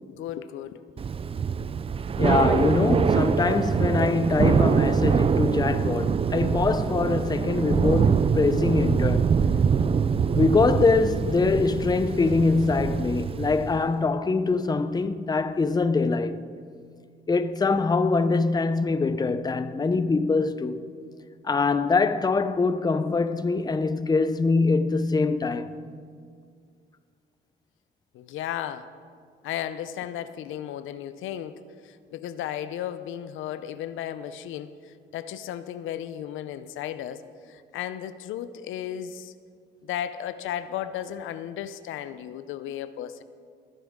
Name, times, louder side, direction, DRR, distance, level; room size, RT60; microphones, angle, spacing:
voice 1, 0.1-0.8 1.6-1.7 12.4-12.5 28.1-28.9 29.4-34.7 35.1-37.2 37.5-39.3 39.8-43.2, left 10 dB, 85° left, 0.6 m, -34 dB
Thunder / Rain, 1.0-13.9, right 6 dB, 30° right, 0.4 m, -24 dB
voice 2, 2.2-9.3 10.3-16.4 17.3-20.8 21.4-25.7, left 4 dB, 20° left, 0.6 m, -23 dB
20.0 x 10.0 x 3.6 m
cardioid pair, 90°, 20 cm